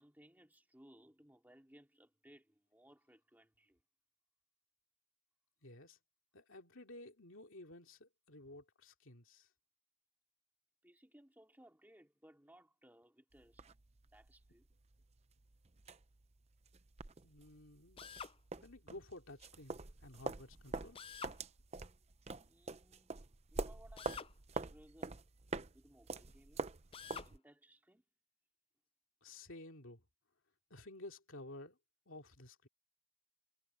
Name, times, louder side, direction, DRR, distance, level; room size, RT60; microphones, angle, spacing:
voice 1, 0.0-3.8 10.8-13.6 14.1-14.7 22.4-23.2 23.5-24.2 24.5-25.2 25.7-26.7 27.2-28.0, right 1 dB, 10° right, 2.4 m, -63 dB
voice 2, 5.6-6.0 6.3-9.5 17.2-18.1 18.6-21.0 29.2-30.0 30.7-31.8 32.1-32.7, left 2 dB, 60° left, 2.6 m, -53 dB
sound 1, 13.3-27.4, right 3 dB, 30° right, 0.7 m, -46 dB
Drill, 18.0-18.4 20.9-21.4 24.0-24.3 26.9-27.3, left 6 dB, 25° left, 0.4 m, -48 dB
head